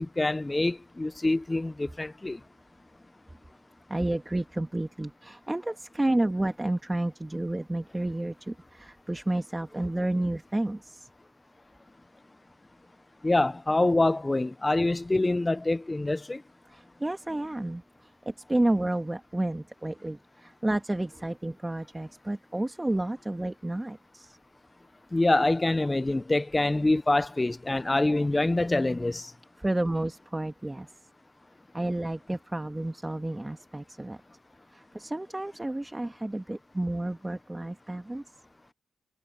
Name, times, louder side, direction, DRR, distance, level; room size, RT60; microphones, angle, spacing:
voice 1, 0.0-2.4 13.2-16.4 25.1-29.3, left 2 dB, 20° left, 1.1 m, -25 dB
voice 2, 3.9-11.1 16.7-24.4 29.6-30.9 31.7-34.2 34.7-38.2, right 1 dB, 15° right, 2.3 m, -31 dB
supercardioid pair, 60°, 0 cm